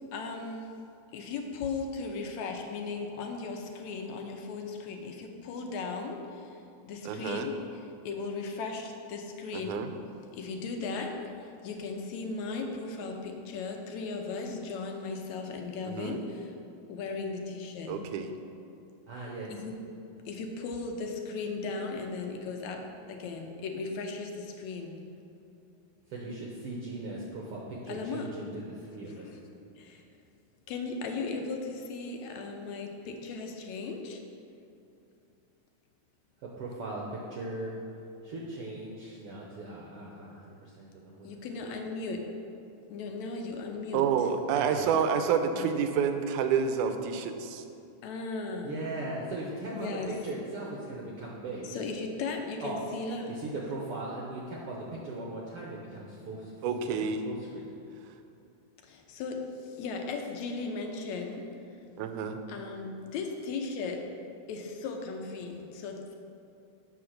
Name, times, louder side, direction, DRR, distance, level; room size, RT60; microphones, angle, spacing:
voice 1, 0.1-0.8 1.1-6.6 6.8-9.9 10.3-16.5 16.9-18.0 19.5-19.8 20.3-25.0 27.9-28.3 29.2-29.4 29.8-30.0 30.7-34.2 41.2-42.3 42.9-44.3 45.6-45.8 48.0-48.8 49.8-50.2 51.6-53.3 58.8-61.5 62.5-64.1 64.5-66.1, left 4 dB, 75° left, 3 dB, 2.0 m, -37 dB
voice 2, 7.1-7.5 9.5-9.9 15.9-16.2 17.9-18.3 43.9-47.6 56.6-57.2 62.0-62.4, right 7 dB, 85° right, 8 dB, 2.1 m, -28 dB
voice 3, 19.1-19.5 26.1-29.3 36.6-37.0 37.3-37.8 38.2-41.3 44.5-45.0 48.6-51.8 52.6-52.8 53.4-57.7, right 2 dB, 65° right, -4 dB, 1.6 m, -39 dB
8.2 x 5.9 x 6.4 m, 2.7 s
omnidirectional pair, 3.5 m